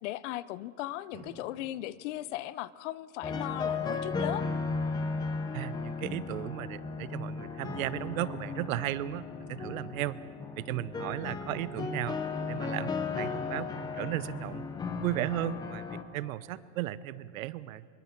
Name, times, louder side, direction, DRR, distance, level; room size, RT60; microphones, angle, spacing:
voice 1, 0.0-4.5, left 15 dB, 60° left, 18 dB, 0.7 m, -37 dB
Drum, 1.1-3.6, right 4 dB, 45° right, 5.7 m, -55 dB
sound 1, 3.2-16.0, left 4 dB, 10° left, 0.7 m, -35 dB
voice 2, 5.5-10.2 10.6-12.2 12.5-14.6 15.0-17.9, right 15 dB, 85° right, 16 dB, 0.9 m, -35 dB
23.0 x 22.5 x 5.9 m, 2.3 s
supercardioid pair, 170°, 40 cm